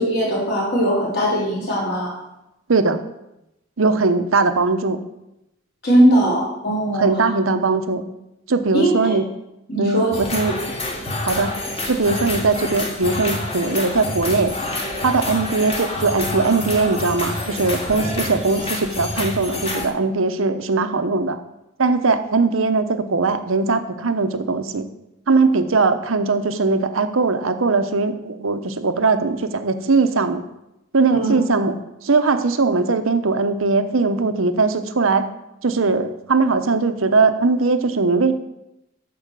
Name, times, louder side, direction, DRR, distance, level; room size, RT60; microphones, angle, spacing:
voice 1, 0.0-2.1 5.8-7.1 8.7-9.2 9.7-10.2 10.5-10.6 31.1-31.3, right 1 dB, 50° left, -5 dB, 4.2 m, -19 dB
voice 2, 2.7-3.0 3.8-5.0 7.0-8.0 8.5-9.2 9.8-10.6 11.3-11.5 11.9-14.6 15.0-21.4 21.8-24.9 25.3-30.4 30.9-31.7 32.0-35.3 35.6-38.3, right 3 dB, 75° right, 9 dB, 0.8 m, -20 dB
sound 1, 10.1-19.9, left 2 dB, 30° left, 1.7 m, -27 dB
12.5 x 4.9 x 6.7 m, 0.89 s
head